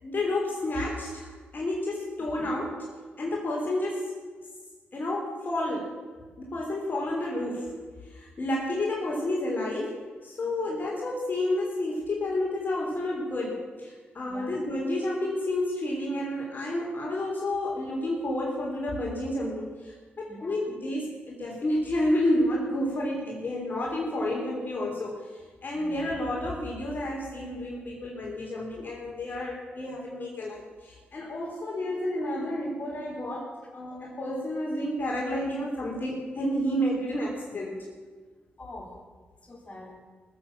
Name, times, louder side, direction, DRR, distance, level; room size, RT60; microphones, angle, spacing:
voice 1, 0.0-2.9 3.2-4.2 4.9-6.0 6.4-7.7 8.0-37.9, left 1 dB, 50° left, -2 dB, 3.3 m, -30 dB
voice 2, 20.2-20.7 25.7-26.1 38.6-39.0 39.4-40.0, left 1 dB, 30° left, -1 dB, 4.0 m, -45 dB
18.5 x 7.7 x 7.3 m, 1.4 s
cardioid pair, 60°, 4 cm